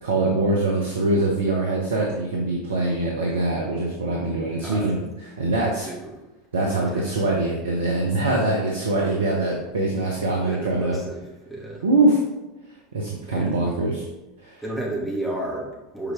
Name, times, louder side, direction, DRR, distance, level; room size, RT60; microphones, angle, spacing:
voice 1, 0.0-5.0 5.4-5.9 6.5-11.0 11.8-12.2 12.9-14.0 14.4-14.6, right 2 dB, 75° right, -1 dB, 1.0 m, -23 dB
voice 2, 4.6-4.9 5.6-6.1 6.6-7.2 10.5-11.8 13.2-13.6 14.6-16.1, right 1 dB, ahead, -4 dB, 2.4 m, -33 dB
7.1 x 4.7 x 3.6 m, 1.0 s
figure-of-eight pair, 80°, 0 cm